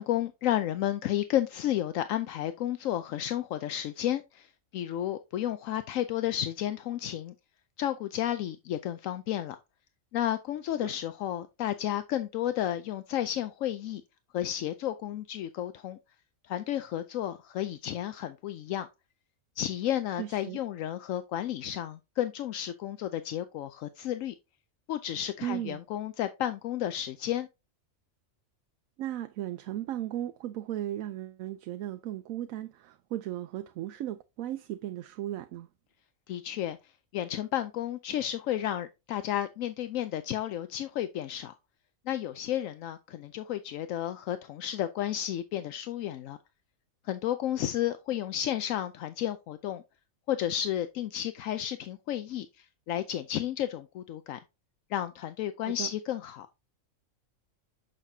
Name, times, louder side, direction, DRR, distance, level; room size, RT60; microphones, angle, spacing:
voice 1, 0.0-7.3 7.8-9.6 10.1-14.0 14.3-16.0 16.5-18.9 19.6-24.3 24.9-27.5 36.3-36.8 37.1-41.5 42.1-46.4 47.0-49.8 50.3-54.4 54.9-56.5, left 12 dB, 80° left, 1.0 m, -32 dB
voice 2, 20.2-20.6 25.4-25.8 29.0-35.7 55.8-55.9, right 12 dB, 85° right, 1.0 m, -36 dB
7.5 x 6.6 x 2.7 m
omnidirectional pair, 1.4 m